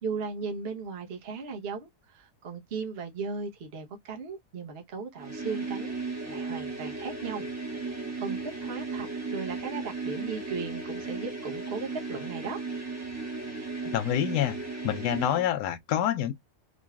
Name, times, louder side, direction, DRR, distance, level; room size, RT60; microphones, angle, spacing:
voice 1, 0.0-5.9 6.2-7.4 7.8-12.6, right 5 dB, 50° right, 0.8 m, -37 dB
sound 1, 5.2-15.5, right 3 dB, 15° right, 0.8 m, -36 dB
voice 2, 13.9-14.6 14.8-16.3, left 11 dB, 80° left, 1.2 m, -27 dB
3.8 x 3.0 x 2.2 m
omnidirectional pair, 1.8 m